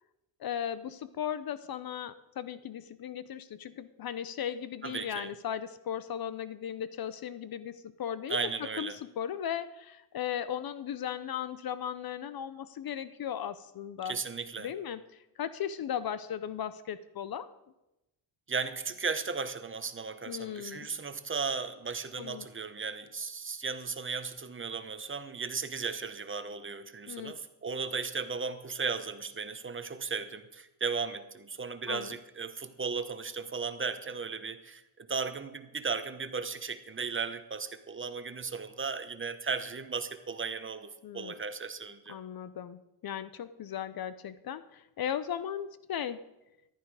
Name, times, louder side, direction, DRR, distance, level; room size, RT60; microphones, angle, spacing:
voice 1, 0.4-8.4 8.8-14.2 14.6-15.0 15.4-17.5 20.3-20.9 22.2-22.5 27.1-27.4 31.9-32.1 41.0-41.3 42.1-46.2, left 9 dB, 50° left, 15 dB, 0.7 m, -37 dB
voice 2, 4.8-5.3 8.3-9.0 14.0-14.7 18.5-42.2, right 5 dB, 25° right, 11 dB, 0.9 m, -36 dB
14.0 x 12.0 x 4.8 m, 0.94 s
cardioid pair, 105°, 46 cm